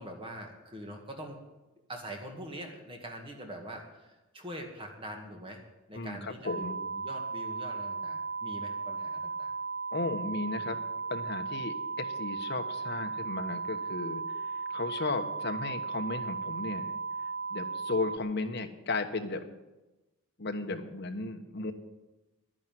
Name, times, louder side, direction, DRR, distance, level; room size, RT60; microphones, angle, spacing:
voice 1, 0.0-1.4 1.9-5.6 5.9-9.5, equal, 25° right, 2 dB, 2.1 m, -43 dB
voice 2, 5.9-6.8 9.9-10.8 11.1-16.9 17.5-19.4 20.4-21.7, left 3 dB, 50° left, 5 dB, 1.2 m, -35 dB
sound 1, 6.5-18.2, right 4 dB, 40° right, 0.4 m, -36 dB
11.0 x 10.5 x 9.2 m, 1.1 s
head